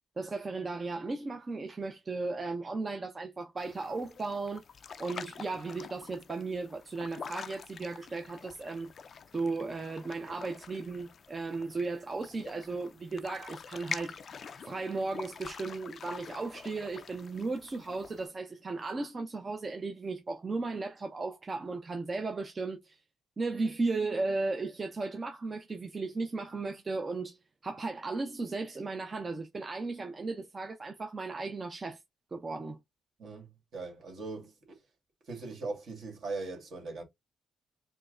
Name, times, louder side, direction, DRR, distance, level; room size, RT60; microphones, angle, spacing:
voice 1, 0.2-4.6 5.0-8.9 9.3-14.2 14.7-23.0 23.4-32.0 32.3-32.8, right 3 dB, 30° right, 0.5 m, -35 dB
sound 1, 3.6-18.3, left 6 dB, 50° left, 0.3 m, -46 dB
voice 2, 33.2-34.8 35.3-37.0, right 3 dB, 60° right, 1.6 m, -40 dB
4.3 x 2.0 x 2.5 m
cardioid pair, 90°, 0 cm